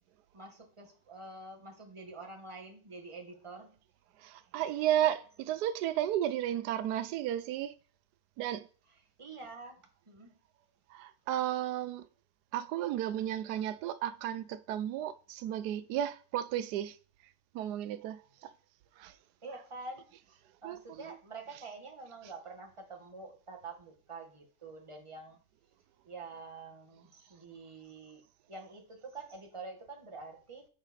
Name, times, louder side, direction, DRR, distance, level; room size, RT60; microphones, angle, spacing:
voice 1, 0.3-3.8 9.2-10.3 19.4-25.4 26.1-28.2 28.5-30.7, right 3 dB, 20° right, 1.4 m, -47 dB
voice 2, 4.2-7.7 8.4-8.7 10.9-12.1 12.5-17.0 17.5-18.5 19.0-19.1 20.6-21.1, right 11 dB, 90° right, 1.2 m, -33 dB
8.9 x 5.0 x 4.2 m
omnidirectional pair, 1.7 m